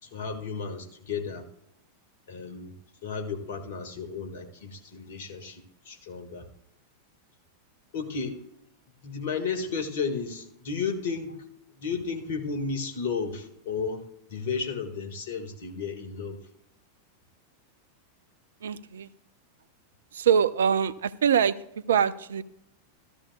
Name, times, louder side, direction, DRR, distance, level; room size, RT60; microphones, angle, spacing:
voice 1, 0.0-1.5 2.3-2.7 3.0-6.5 7.9-8.4 9.0-11.5 11.7-16.4, left 5 dB, 55° left, 5 dB, 1.7 m, -33 dB
voice 2, 18.6-19.1 20.1-22.4, right 8 dB, 65° right, 15 dB, 0.5 m, -24 dB
14.5 x 13.5 x 2.3 m, 0.79 s
figure-of-eight pair, 90°, 0 cm